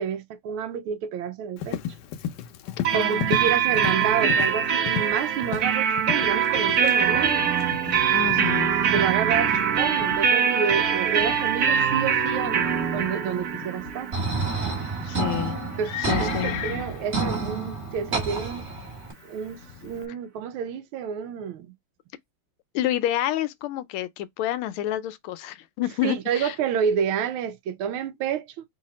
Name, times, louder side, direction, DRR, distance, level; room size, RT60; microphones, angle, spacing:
voice 1, 0.0-1.8 2.9-7.5 8.9-12.6 12.9-14.1 15.8-18.6 19.3-21.7 26.0-28.5, right 7 dB, 80° right, 1.5 m, -29 dB
Livestock farm animals working animals, 1.6-20.1, left 9 dB, 70° left, 1.0 m, -37 dB
sound 1, 2.8-16.4, right 8 dB, 55° right, 1.2 m, -24 dB
voice 2, 2.9-3.5 8.1-8.7 15.0-15.6 16.0-16.6 22.7-26.6, left 12 dB, 85° left, 1.5 m, -29 dB
sound 2, 14.1-19.1, right 3 dB, 35° right, 1.8 m, -29 dB
3.8 x 2.8 x 4.0 m
omnidirectional pair, 2.3 m